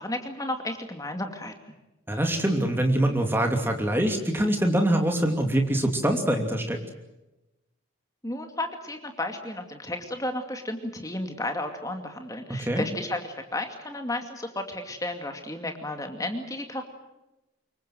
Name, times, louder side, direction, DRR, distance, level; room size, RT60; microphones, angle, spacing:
voice 1, 0.0-1.5 8.2-16.8, left 1 dB, 15° left, 5 dB, 2.4 m, -33 dB
voice 2, 2.1-6.8 12.6-12.8, right 1 dB, 10° right, 3 dB, 2.8 m, -24 dB
26.0 x 23.0 x 7.7 m, 0.99 s
head